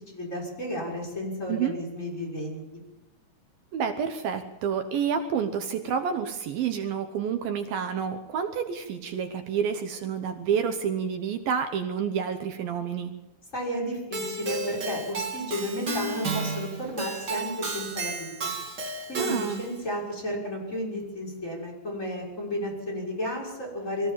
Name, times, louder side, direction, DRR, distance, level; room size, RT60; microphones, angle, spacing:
voice 1, 0.1-2.6 13.5-18.5 19.1-24.1, left 1 dB, 20° left, -1 dB, 6.3 m, -33 dB
voice 2, 3.7-13.1 19.2-19.6, right 7 dB, 75° right, 7 dB, 2.7 m, -29 dB
Keyboard (musical), 14.1-19.8, right 3 dB, 35° right, 2.1 m, -33 dB
23.5 x 15.5 x 7.5 m, 1.0 s
omnidirectional pair, 4.4 m